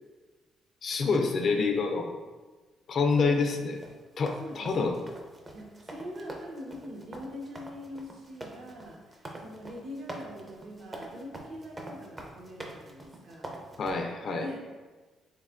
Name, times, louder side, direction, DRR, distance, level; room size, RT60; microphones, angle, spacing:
voice 1, 0.8-2.2 2.9-3.8 4.2-4.9 13.8-14.6, left 4 dB, 55° left, 4 dB, 0.3 m, -27 dB
voice 2, 3.1-3.4 4.4-5.1 5.5-13.6 14.4-14.6, left 1 dB, 65° right, -1 dB, 0.8 m, -43 dB
sound 1, 3.4-13.9, right 1 dB, 25° right, 0.5 m, -44 dB
3.4 x 3.2 x 2.4 m, 1.3 s
cardioid pair, 90°, 0 cm